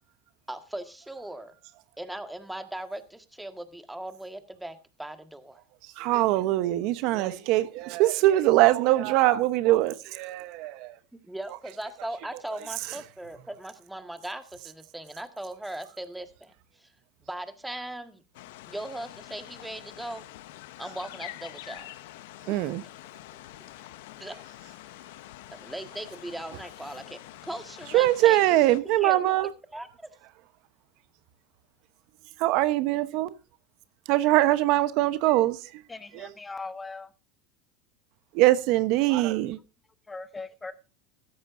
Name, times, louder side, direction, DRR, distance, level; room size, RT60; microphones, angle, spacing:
voice 1, 0.5-1.5 2.0-5.6 11.1-16.9 17.2-18.2 18.7-20.2 20.8-21.9 24.2-24.4 25.5-28.6 28.8-29.2 29.7-30.1, right 1 dB, 5° right, 1.7 m, -39 dB
voice 2, 5.8-11.0 12.9-13.0 22.5-22.8 27.9-29.5 32.4-33.3 34.1-35.8 36.1-36.3 38.3-39.6, right 16 dB, 60° right, 1.0 m, -23 dB
sound 1, 18.3-28.8, left 16 dB, 80° left, 0.9 m, -46 dB
voice 3, 35.9-37.1 40.1-40.7, left 3 dB, 15° left, 1.1 m, -39 dB
15.0 x 13.0 x 2.6 m
supercardioid pair, 120°, 0 cm